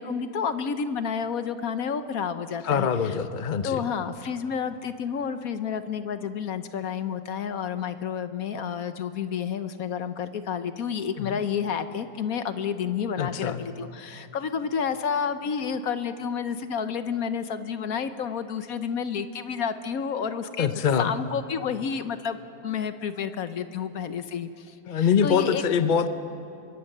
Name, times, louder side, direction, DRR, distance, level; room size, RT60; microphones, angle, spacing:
voice 1, 0.0-2.9 3.6-20.7 21.0-25.6, left 7 dB, 60° left, 10 dB, 1.2 m, -30 dB
voice 2, 2.6-3.8 11.2-11.4 13.2-13.6 20.6-21.1 24.9-26.1, left 7 dB, 45° left, 10 dB, 0.7 m, -24 dB
24.0 x 22.0 x 6.7 m, 2.8 s
omnidirectional pair, 1.8 m